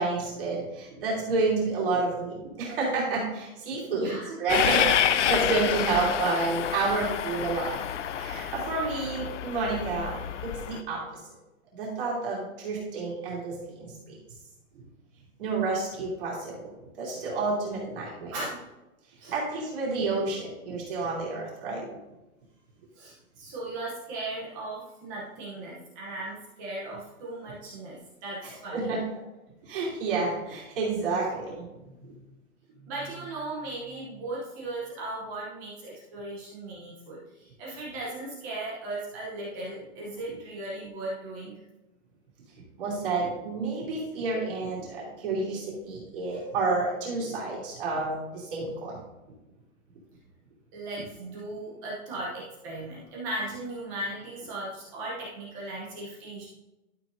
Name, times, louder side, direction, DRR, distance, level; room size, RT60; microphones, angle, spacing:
voice 1, 0.0-4.1 4.4-7.8 8.1-11.2 11.7-13.9 15.4-16.6 17.0-18.4 19.3-21.9 28.4-29.0 29.7-31.7 32.0-32.1 42.8-49.0, right 3 dB, 40° right, -5 dB, 3.0 m, -30 dB
voice 2, 3.9-4.3 5.6-5.7 18.3-18.7 19.2-19.3 23.0-29.0 31.9-32.0 32.8-41.5 46.3-46.4 50.7-56.5, right 2 dB, 15° right, -5 dB, 0.8 m, -37 dB
Train, 4.5-10.8, left 9 dB, 55° left, 0.5 m, -28 dB
12.0 x 6.2 x 2.7 m, 1.0 s
hypercardioid pair, 170°, 43 cm